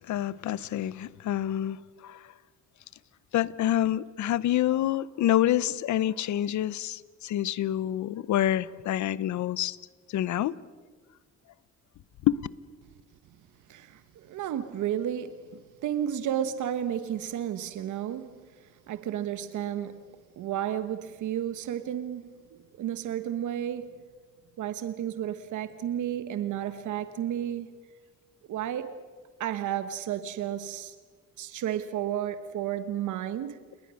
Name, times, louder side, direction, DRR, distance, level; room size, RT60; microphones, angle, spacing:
voice 1, 0.1-1.8 2.0-2.2 3.3-9.8 10.1-10.5 12.2-12.4, left 12 dB, 70° left, 0.8 m, -27 dB
voice 2, 13.7-20.0 20.4-23.9 24.6-27.7 28.5-29.0 29.4-30.9 31.4-33.7, right 10 dB, 75° right, 1.3 m, -32 dB
29.5 x 20.0 x 6.4 m
cardioid pair, 90°, 30 cm